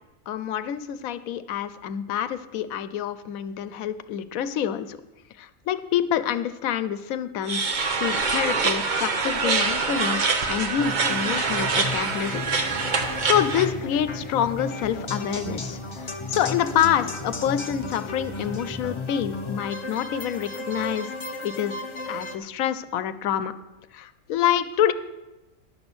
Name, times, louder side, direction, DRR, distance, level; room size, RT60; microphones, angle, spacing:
voice 1, 0.3-5.0 5.4-12.4 13.0-21.1 21.4-21.8 22.1-23.5 23.9-24.9, left 10 dB, 90° left, 13 dB, 1.1 m, -27 dB
sound 1, 7.5-13.7, right 4 dB, 40° right, 0.8 m, -25 dB
sound 2, 10.8-22.4, left 2 dB, 30° left, 0.6 m, -34 dB
11.0 x 6.1 x 6.9 m, 1.0 s
omnidirectional pair, 1.4 m